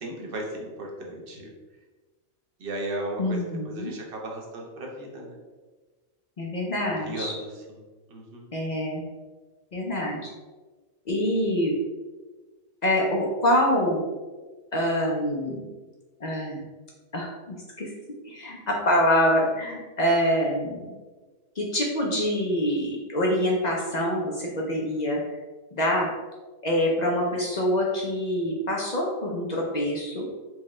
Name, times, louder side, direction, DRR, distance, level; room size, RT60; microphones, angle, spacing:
voice 1, 0.0-1.5 2.6-3.4 3.6-5.4 6.8-8.5, right 1 dB, 50° right, 0 dB, 0.8 m, -36 dB
voice 2, 3.2-3.9 6.4-7.3 8.5-9.0 9.7-10.3 11.1-11.8 12.8-14.0 14.7-15.6 16.2-16.7 17.1-17.9 18.2-20.8 21.6-25.2 25.7-26.1 26.6-30.3, equal, 60° left, -2 dB, 0.4 m, -25 dB
4.6 x 2.3 x 3.1 m, 1.3 s
omnidirectional pair, 1.4 m